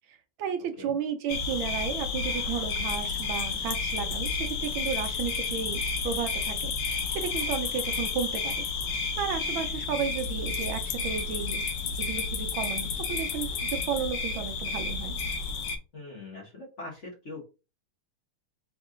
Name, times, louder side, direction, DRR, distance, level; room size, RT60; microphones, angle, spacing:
voice 1, 0.1-8.7 9.2-11.6 12.0-15.2, right 7 dB, 75° right, 7 dB, 1.3 m, -33 dB
sound 1, 1.3-15.8, left 4 dB, 70° left, 1.2 m, -31 dB
voice 2, 15.9-17.4, left 2 dB, 40° left, -2 dB, 1.2 m, -42 dB
3.6 x 3.1 x 3.7 m, 0.30 s
omnidirectional pair, 2.3 m